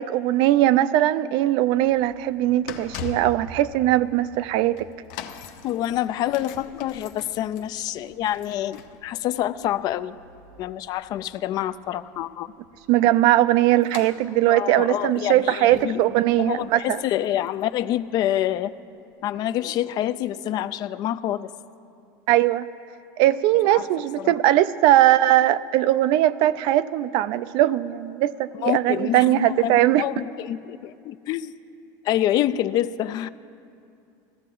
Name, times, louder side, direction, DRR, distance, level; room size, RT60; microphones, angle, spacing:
voice 1, 0.0-4.9 12.9-17.0 22.3-22.7 23.2-30.0, right 14 dB, 60° right, 15 dB, 0.4 m, -20 dB
sound 1, 1.6-18.6 19.2-19.3, left 6 dB, 70° left, 0.7 m, -43 dB
voice 2, 5.6-10.2 10.6-12.5 14.5-16.0 16.4-18.7 19.2-21.5 23.7-23.9 24.2-24.3 28.5-31.5 32.0-33.3, left 12 dB, 45° left, 14 dB, 0.3 m, -27 dB
15.5 x 13.5 x 3.8 m, 2.6 s
supercardioid pair, 140°, 9 cm